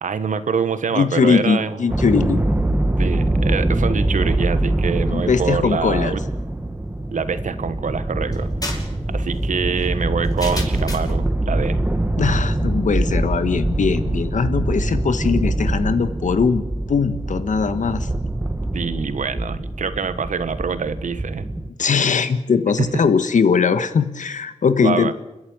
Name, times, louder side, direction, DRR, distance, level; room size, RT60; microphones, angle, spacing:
voice 1, 0.0-1.7 3.0-6.2 7.1-11.8 18.7-21.5 22.8-22.9 24.8-25.1, right 6 dB, 75° right, 12 dB, 1.3 m, -25 dB
voice 2, 0.9-2.4 5.1-6.1 12.2-16.6 16.9-18.1 21.8-25.1, left 5 dB, 75° left, 11 dB, 1.5 m, -20 dB
sound 1, 1.9-21.7, right 1 dB, 15° right, 1.4 m, -23 dB
sound 2, 8.3-11.2, left 2 dB, 30° left, 5.6 m, -33 dB
29.5 x 11.0 x 8.8 m, 1.0 s
wide cardioid pair, 75°, 13 cm